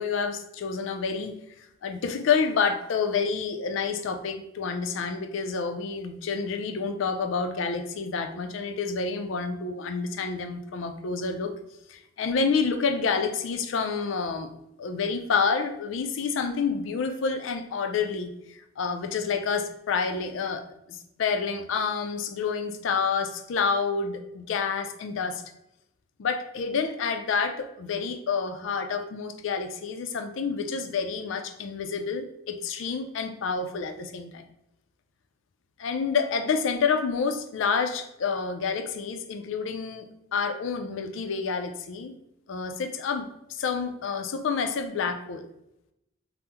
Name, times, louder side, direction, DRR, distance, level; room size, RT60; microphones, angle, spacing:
voice 1, 0.0-11.5 11.9-14.5 14.8-20.6 20.9-25.4 26.2-34.4 35.8-40.1 40.3-42.2 42.5-45.5, left 5 dB, 70° left, 7 dB, 0.4 m, -28 dB
2.9 x 2.0 x 3.4 m, 0.83 s
head